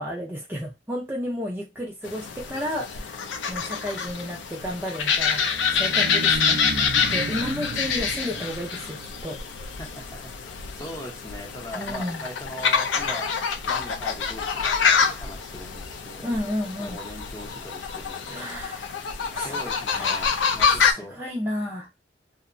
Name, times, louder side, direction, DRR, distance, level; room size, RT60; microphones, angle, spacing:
voice 1, 0.0-3.2 3.5-5.4 5.7-6.6 7.1-9.0 9.2-9.4 11.8-12.2 16.2-17.0 18.3-19.0 19.3-21.9, equal, 10° right, 0.4 m, -32 dB
sound 1, 2.0-20.9, left 6 dB, 75° left, 0.4 m, -26 dB
sound 2, 5.1-9.6, right 3 dB, 70° right, 0.4 m, -35 dB
voice 2, 9.8-13.3 13.6-16.3 16.8-18.5 19.4-21.2, equal, 20° left, 0.7 m, -41 dB
2.7 x 2.1 x 2.5 m
head